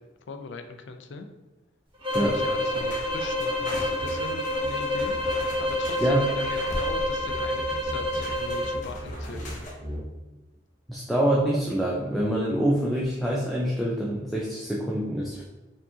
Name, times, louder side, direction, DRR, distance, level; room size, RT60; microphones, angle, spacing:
voice 1, 0.3-1.3 2.2-9.7, left 3 dB, 90° left, 7 dB, 0.4 m, -40 dB
sound 1, 2.0-8.8, left 1 dB, 30° right, 1.1 m, -28 dB
sound 2, 2.1-9.7, equal, 45° left, 0.8 m, -40 dB
sound 3, 4.0-4.2 4.5-10.1, equal, 55° right, 0.9 m, -39 dB
voice 2, 10.9-15.4, right 1 dB, ahead, -5 dB, 0.4 m, -25 dB
4.4 x 2.8 x 2.7 m, 1.0 s
head